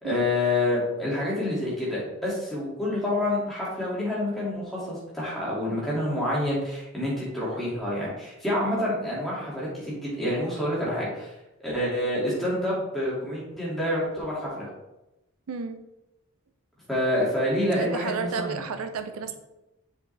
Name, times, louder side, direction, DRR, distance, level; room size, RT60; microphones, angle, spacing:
voice 1, 0.0-11.3 11.6-14.7 16.9-18.6, left 1 dB, ahead, -7 dB, 2.1 m, -27 dB
voice 2, 15.5-15.8 17.7-19.4, right 5 dB, 85° right, 8 dB, 0.5 m, -32 dB
7.0 x 4.9 x 3.3 m, 0.95 s
head